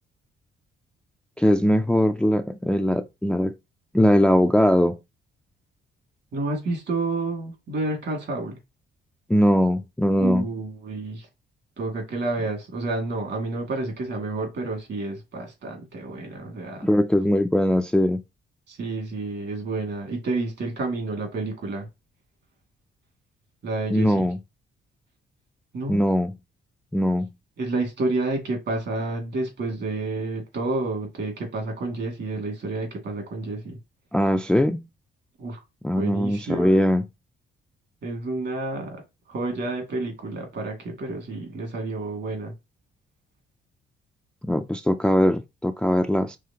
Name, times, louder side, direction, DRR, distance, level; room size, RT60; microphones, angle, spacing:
voice 1, 1.4-3.5 3.9-5.0 9.3-10.4 16.8-18.2 23.9-24.4 25.9-26.3 26.9-27.3 34.1-34.8 35.8-37.0 44.4-46.4, equal, 5° left, 0.4 m, -21 dB
voice 2, 6.3-8.6 10.2-11.3 11.8-16.9 18.7-21.9 23.6-24.3 25.7-26.0 27.6-33.8 35.4-35.6 36.0-36.8 38.0-39.0 39.3-42.5, right 2 dB, 60° right, 2.2 m, -29 dB
4.9 x 3.2 x 2.9 m
cardioid pair, 90°, 20 cm